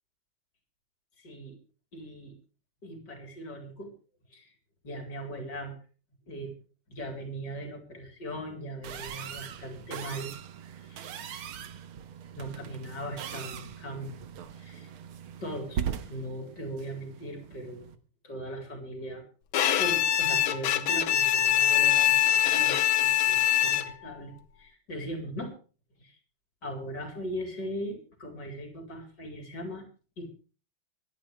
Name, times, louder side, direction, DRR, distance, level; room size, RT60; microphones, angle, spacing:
voice 1, 1.2-1.6 1.9-2.3 2.8-3.9 4.3-4.5 4.8-5.8 6.3-6.6 6.9-10.3 10.8-11.1 12.4-14.2 14.6-14.9 15.4-17.9 18.2-19.3 19.8-25.5 26.0-26.2 26.6-29.8 30.2-30.3, equal, 50° left, 2 dB, 4.5 m, -39 dB
sound 1, 8.8-18.0, right 8 dB, 75° right, 1.9 m, -40 dB
Bowed string instrument, 19.5-24.1, left 11 dB, 75° left, 1.8 m, -24 dB
24.5 x 11.0 x 3.4 m, 0.37 s
omnidirectional pair, 2.4 m